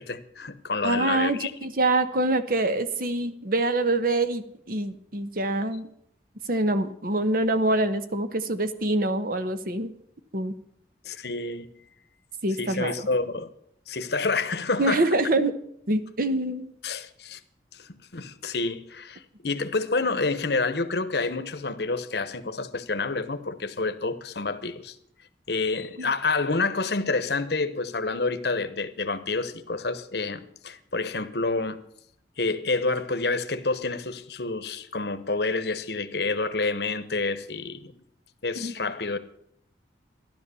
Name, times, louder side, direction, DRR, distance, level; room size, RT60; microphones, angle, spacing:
voice 1, 0.0-1.5 11.0-11.7 12.6-13.5 13.9-15.1 16.8-17.4 17.7-24.9 25.5-31.8 32.4-37.9 38.4-39.2, left 3 dB, 60° left, 1.0 m, -28 dB
voice 2, 0.8-5.9 6.5-9.9 10.3-10.5 12.4-13.1 14.8-15.5 15.9-16.7 26.0-26.1 38.6-38.7, right 2 dB, 50° right, 1.0 m, -25 dB
13.5 x 12.0 x 6.9 m
head